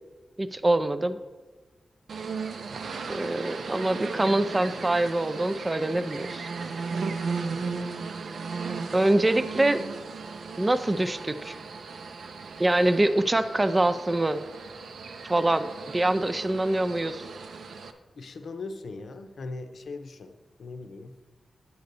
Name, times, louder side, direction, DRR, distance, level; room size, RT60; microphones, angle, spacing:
voice 1, 0.4-1.2 3.1-6.5 8.9-9.8 10.6-11.6 12.6-14.4 15.2-17.2, right 1 dB, 20° right, 12 dB, 0.3 m, -24 dB
sound 1, 2.1-17.9, right 4 dB, 70° right, 0.6 m, -36 dB
voice 2, 18.2-21.2, left 3 dB, 65° left, 6 dB, 0.6 m, -40 dB
9.4 x 3.9 x 6.7 m, 1.3 s
wide cardioid pair, 170°, 0 cm